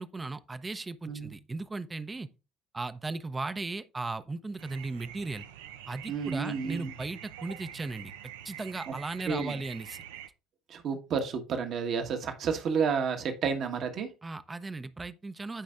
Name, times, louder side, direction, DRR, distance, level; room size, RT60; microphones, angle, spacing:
voice 1, 0.0-2.3 2.7-5.5 5.9-8.1 8.4-10.0 14.2-15.6, right 3 dB, 20° right, 0.7 m, -37 dB
sound 1, 4.6-10.3, right 10 dB, 70° right, 0.5 m, -46 dB
voice 2, 6.1-6.9 8.9-9.0 9.2-9.6 10.7-14.1, right 6 dB, 50° right, 1.4 m, -31 dB
14.5 x 5.2 x 2.5 m
figure-of-eight pair, 50°, 0 cm